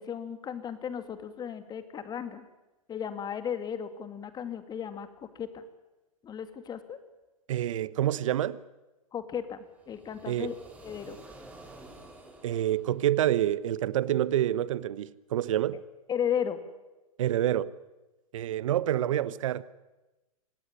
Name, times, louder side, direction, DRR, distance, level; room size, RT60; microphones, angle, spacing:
voice 1, 0.0-2.5 2.9-5.6 6.2-7.0 9.1-10.5 10.8-11.2 16.1-16.6, left 8 dB, 20° left, 2.3 m, -35 dB
voice 2, 7.5-8.6 10.3-10.5 12.4-15.8 17.2-17.7 18.3-19.6, right 12 dB, 60° right, 1.1 m, -27 dB
sound 1, 9.7-13.7, right 2 dB, 10° right, 4.9 m, -51 dB
25.5 x 18.0 x 9.8 m
figure-of-eight pair, 105°, 19 cm